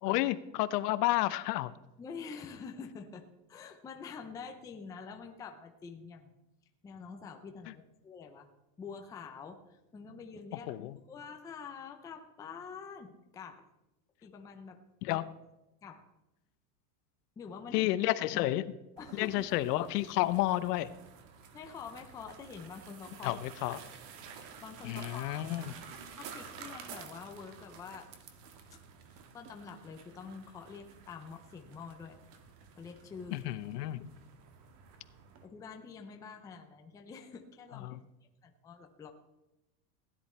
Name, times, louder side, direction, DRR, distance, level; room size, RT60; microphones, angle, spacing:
voice 1, 0.0-1.7 10.7-11.0 15.0-15.2 17.7-18.6 19.1-20.9 23.2-23.8 24.8-25.6 33.3-34.0 37.8-38.0, left 16 dB, 75° left, 13 dB, 0.9 m, -31 dB
voice 2, 2.0-6.3 6.8-8.5 8.8-10.7 11.1-13.6 14.2-14.8 15.1-15.2 15.8-16.0 17.4-17.9 18.3-18.4 19.0-19.5 21.5-23.4 24.6-25.5 26.2-28.1 28.7-28.8 29.1-32.2 32.8-33.4 35.4-38.0 38.4-39.1, left 5 dB, 10° left, 4 dB, 0.5 m, -46 dB
sound 1, 19.0-35.5, right 6 dB, 50° right, 1.7 m, -51 dB
16.5 x 10.5 x 4.3 m, 0.96 s
supercardioid pair, 165°, 48 cm